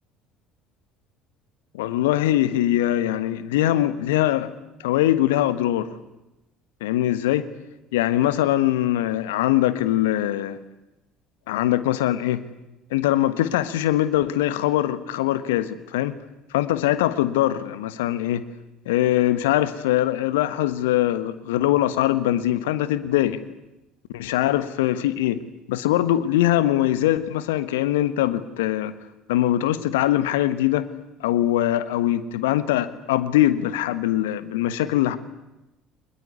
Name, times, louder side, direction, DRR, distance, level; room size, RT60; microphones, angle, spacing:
voice 1, 1.7-4.5 4.8-5.9 6.8-7.5 7.9-10.6 11.5-12.4 12.9-16.1 16.5-18.5 18.9-23.4 24.1-25.4 25.7-28.9 29.3-30.9 31.2-35.2, left 13 dB, 70° left, 1.3 m, -22 dB
23.5 x 21.0 x 9.7 m
figure-of-eight pair, 60°, 0 cm